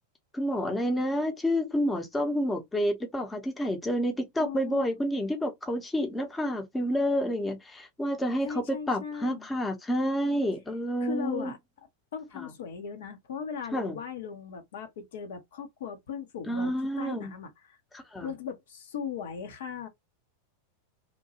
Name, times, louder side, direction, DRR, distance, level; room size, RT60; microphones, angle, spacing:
voice 1, 0.3-11.5 12.3-12.5 13.7-14.0 16.5-17.3 17.9-18.3, equal, 10° left, 0.7 m, -29 dB
voice 2, 4.4-4.9 8.4-9.5 11.0-11.6 12.1-17.8 18.2-19.9, left 6 dB, 60° left, 0.7 m, -38 dB
2.8 x 2.2 x 2.8 m
figure-of-eight pair, 90°, 0 cm